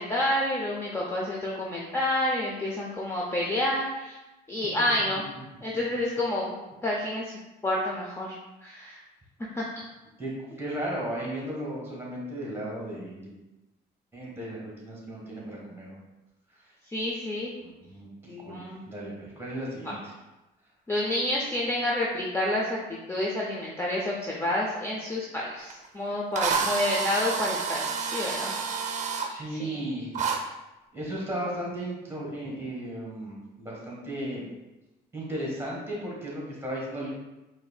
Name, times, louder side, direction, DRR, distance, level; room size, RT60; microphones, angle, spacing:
voice 1, 0.0-4.2 4.5-5.3 5.6-6.5 6.8-7.3 7.6-8.3 8.6-9.0 9.5-9.7 16.9-17.5 18.3-18.8 20.9-28.5 29.6-29.8, left 1 dB, 15° left, -3 dB, 0.5 m, -29 dB
voice 2, 10.2-13.3 14.1-16.0 16.6-16.7 17.6-20.1 29.2-30.1 30.9-34.4 35.1-37.1, right 1 dB, 15° right, -4 dB, 1.5 m, -35 dB
Drill, 25.7-25.8 26.4-29.3 30.2-30.4, right 5 dB, 45° right, 0.6 m, -29 dB
4.9 x 2.7 x 2.2 m, 1.0 s
cardioid pair, 110°, 17 cm